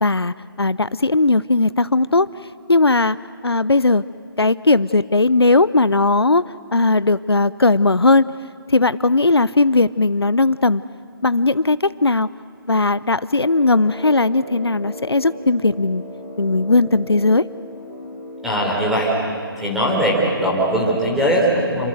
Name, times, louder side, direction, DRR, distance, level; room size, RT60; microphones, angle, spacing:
voice 1, 0.0-2.3 2.7-3.2 3.4-4.0 4.4-6.4 6.7-8.3 8.7-10.8 11.2-12.3 12.7-16.0 16.4-17.5, left 3 dB, 90° left, 17 dB, 0.7 m, -17 dB
Brass instrument, 13.3-18.9, equal, 20° right, 5.6 m, -36 dB
voice 2, 18.4-19.1 19.6-21.9, right 1 dB, ahead, -5 dB, 4.2 m, -20 dB
28.0 x 25.5 x 7.9 m, 2.3 s
figure-of-eight pair, 150°, 13 cm